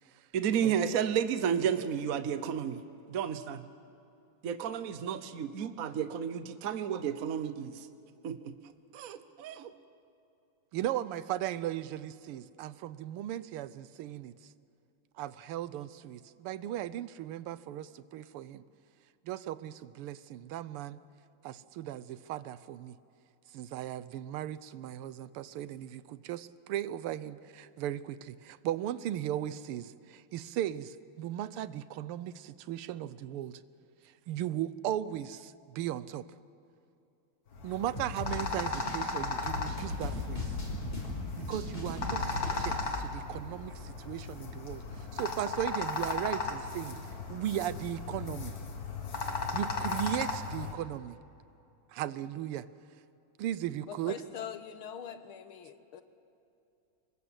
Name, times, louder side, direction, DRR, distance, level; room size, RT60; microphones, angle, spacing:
voice 1, 0.3-2.8 3.1-3.6 4.4-7.9 8.2-8.6 8.9-9.7, right 8 dB, 55° right, 11 dB, 1.1 m, -32 dB
voice 2, 10.7-14.3 15.2-18.6 19.3-21.0 21.4-23.0 23.5-33.6 34.3-36.3 37.6-40.5 41.5-47.0 47.3-48.6 49.5-51.2 51.9-52.7 53.4-54.2, right 12 dB, 90° right, 16 dB, 1.7 m, -37 dB
sound 1, 37.5-50.7, left 4 dB, 45° left, 2.2 m, -36 dB
sound 2, 37.9-42.9, left 1 dB, 25° left, 5.5 m, -38 dB
voice 3, 53.9-56.0, left 8 dB, 75° left, 9 dB, 2.0 m, -43 dB
25.0 x 21.0 x 8.0 m, 2.7 s
omnidirectional pair, 2.4 m